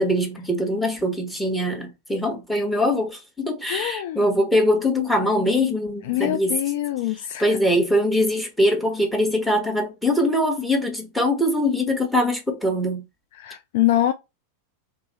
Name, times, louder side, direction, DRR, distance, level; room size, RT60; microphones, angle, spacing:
voice 1, 0.0-6.6 7.1-13.0, left 1 dB, 5° left, 1.2 m, -22 dB
voice 2, 3.7-4.2 6.1-7.4 13.4-14.1, left 13 dB, 50° left, 0.3 m, -24 dB
3.3 x 2.8 x 3.0 m
figure-of-eight pair, 90°, 0 cm